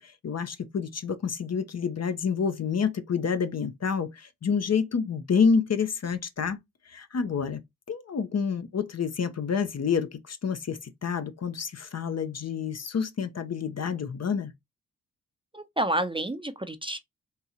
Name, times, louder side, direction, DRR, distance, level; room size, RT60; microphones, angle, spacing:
voice 1, 0.0-6.6 6.9-7.6 7.9-14.5, left 6 dB, 45° left, 0.8 m, -28 dB
voice 2, 15.5-17.0, right 1 dB, 15° right, 0.6 m, -29 dB
3.8 x 2.7 x 2.8 m
supercardioid pair, 40°, 36 cm